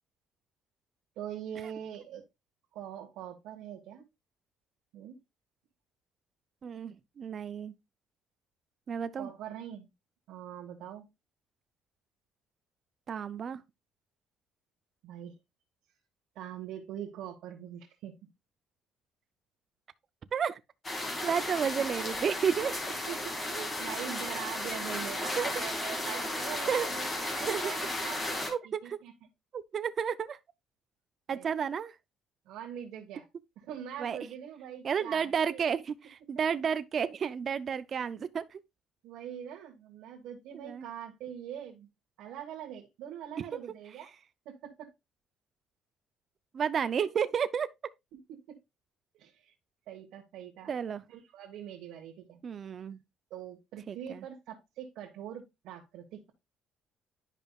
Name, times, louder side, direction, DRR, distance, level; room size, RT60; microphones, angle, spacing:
voice 1, 1.2-2.2 2.7-4.0 4.9-5.2 9.2-9.9 10.3-11.1 15.0-15.3 16.3-18.1 23.1-29.1 31.3-31.5 32.5-33.3 33.6-35.6 39.0-41.9 42.2-44.1 44.4-44.9 48.1-48.6 49.1-49.5 49.9-50.7 51.1-52.4 53.3-56.3, right 10 dB, 75° right, 1.4 m, -43 dB
voice 2, 6.6-7.7 8.9-9.3 13.1-13.6 20.3-20.6 21.2-22.8 25.4-25.5 26.7-26.9 27.5-27.7 28.5-29.0 29.5-30.4 31.3-32.0 34.0-34.2 34.8-38.6 40.5-40.9 43.4-43.5 46.5-47.7 50.7-51.0 52.4-53.0 53.9-54.2, right 7 dB, 35° right, 0.4 m, -31 dB
sound 1, 20.8-28.5, left 1 dB, 20° left, 2.1 m, -34 dB
11.0 x 5.3 x 2.3 m
cardioid pair, 145°, 0 cm